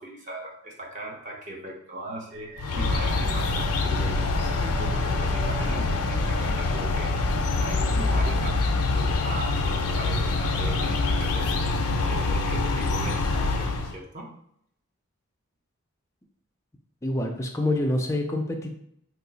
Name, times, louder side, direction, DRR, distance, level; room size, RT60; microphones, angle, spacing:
voice 1, 0.0-7.1 7.6-14.3, right 1 dB, 35° right, -1 dB, 0.6 m, -39 dB
sound 1, 2.3-8.2, right 1 dB, 70° right, 0.7 m, -43 dB
sound 2, 2.6-14.0, left 3 dB, 90° left, 0.4 m, -25 dB
voice 2, 17.0-18.7, left 1 dB, 15° left, 2 dB, 0.3 m, -26 dB
2.8 x 2.3 x 3.9 m, 0.70 s
head